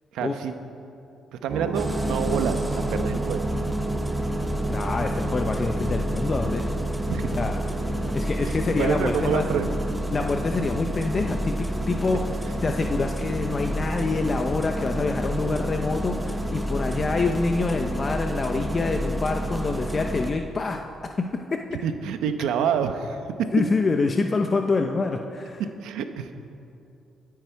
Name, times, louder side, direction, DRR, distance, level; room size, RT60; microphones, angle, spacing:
voice 1, 0.1-0.6 1.3-3.4 7.1-7.2 8.4-9.7 21.7-23.5 25.8-26.3, right 7 dB, 90° right, 8 dB, 0.9 m, -27 dB
sound 1, 1.5-19.8, right 1 dB, 40° right, 2.3 m, -34 dB
Engine starting, 1.7-20.3, equal, 5° right, 1.3 m, -30 dB
voice 2, 4.7-6.6 7.3-7.6 8.1-9.4 10.1-12.4 12.6-21.6 23.5-25.6, left 3 dB, 35° left, 4 dB, 0.8 m, -26 dB
22.0 x 9.5 x 4.6 m, 2.6 s
cardioid pair, 90°, 0 cm